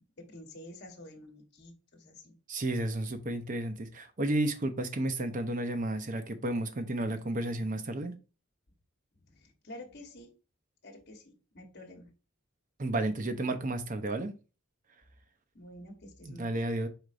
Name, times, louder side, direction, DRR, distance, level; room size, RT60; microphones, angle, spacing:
voice 1, 0.0-2.3 9.2-10.3 10.8-12.1 15.5-16.7, left 1 dB, 50° left, 1.1 m, -49 dB
voice 2, 2.5-8.1 12.8-14.3 16.3-16.9, right 1 dB, 40° right, 0.6 m, -32 dB
4.8 x 4.3 x 2.5 m
head